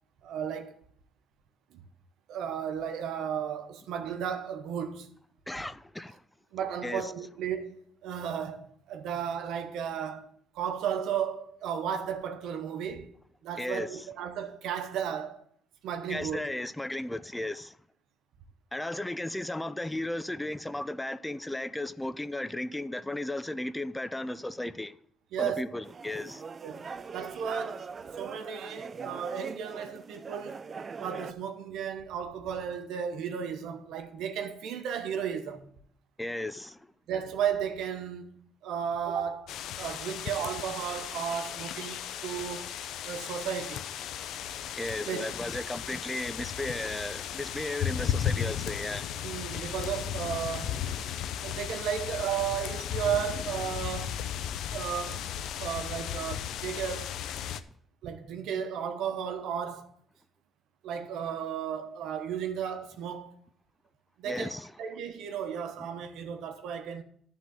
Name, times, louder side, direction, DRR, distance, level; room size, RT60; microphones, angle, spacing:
voice 1, 0.2-0.7 1.7-1.8 2.3-5.1 6.5-7.8 8.0-10.3 10.5-13.1 13.4-15.4 15.8-16.5 25.3-25.6 26.6-26.8 27.1-27.9 28.2-30.6 31.0-35.6 37.1-42.7 43.0-43.8 45.1-45.3 49.2-50.8 51.4-54.2 54.7-55.3 55.6-57.2 58.0-59.9 60.8-63.4 64.2-67.0, right 8 dB, 85° right, 1.0 m, -34 dB
voice 2, 5.5-6.2 6.8-7.1 13.6-14.1 16.1-17.8 18.7-24.9 25.4-26.4 36.2-36.9 44.7-49.2 64.3-64.7 65.8-65.9, left 1 dB, 10° left, 0.5 m, -35 dB
sound 1, 25.8-31.3, right 5 dB, 40° right, 0.5 m, -41 dB
sound 2, 39.5-57.6, left 9 dB, 85° left, 0.5 m, -35 dB
11.5 x 3.8 x 7.3 m
cardioid pair, 90°, 0 cm